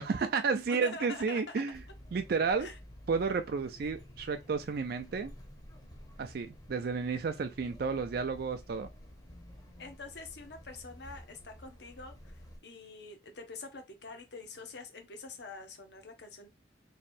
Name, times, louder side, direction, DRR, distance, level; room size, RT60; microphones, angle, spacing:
voice 1, 0.0-1.8 2.1-2.7 3.1-5.3 6.2-8.9, right 5 dB, 55° right, 0.4 m, -32 dB
voice 2, 0.7-1.6 2.6-2.8 9.8-16.5, left 3 dB, 65° left, 0.9 m, -46 dB
sound 1, 1.7-12.6, equal, 20° left, 0.8 m, -52 dB
3.1 x 2.6 x 4.1 m
head